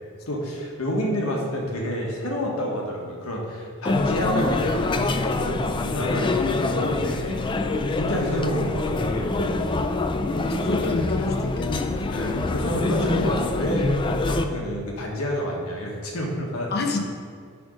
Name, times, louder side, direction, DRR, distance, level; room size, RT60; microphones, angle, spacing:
voice 1, 0.3-7.6 7.9-9.8 12.1-16.7, equal, 65° left, -1 dB, 1.4 m, -28 dB
sound 1, 3.9-14.4, left 3 dB, 20° left, 0.3 m, -25 dB
voice 2, 10.3-12.4 16.7-17.0, left 2 dB, 45° left, 3 dB, 0.8 m, -30 dB
10.0 x 3.6 x 5.0 m, 2.1 s
head